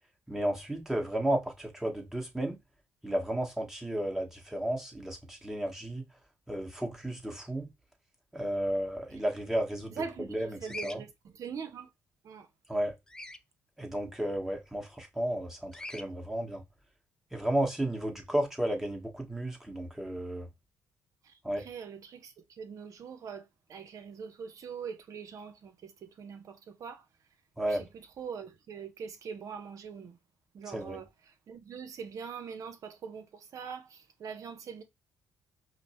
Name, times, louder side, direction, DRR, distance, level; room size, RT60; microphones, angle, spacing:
voice 1, 0.3-2.6 3.0-6.0 6.5-7.7 8.3-10.0 10.3-11.0 12.7-12.9 13.8-16.6 17.3-20.5 21.4-21.7 27.6-27.8 30.7-31.0, right 1 dB, 5° right, 1.2 m, -33 dB
voice 2, 9.9-11.9 12.2-12.5 21.2-27.0 27.7-30.2 30.5-34.8, right 6 dB, 60° right, 0.8 m, -43 dB
Bird vocalization bird call bird song, 10.6-11.0 13.1-13.4 15.7-16.0, left 2 dB, 10° left, 0.4 m, -41 dB
5.0 x 2.0 x 3.0 m
cardioid pair, 75°, 6 cm